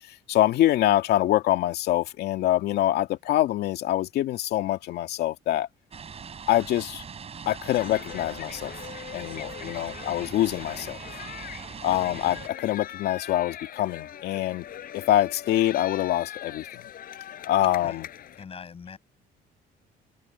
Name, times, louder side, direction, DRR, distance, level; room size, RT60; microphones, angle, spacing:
voice 1, 0.3-5.7 6.5-7.0 7.5-8.7 9.1-11.0 11.8-14.6 14.9-16.8 17.4-18.0, left 13 dB, 75° left, 2.2 m, -25 dB
sound 1, 5.9-12.5, right 6 dB, 35° right, 8.0 m, -41 dB
sound 2, 7.7-18.4, left 10 dB, 60° left, 7.6 m, -41 dB
voice 2, 18.4-19.0, left 6 dB, 35° left, 6.7 m, -41 dB
cardioid pair, 110°, 17 cm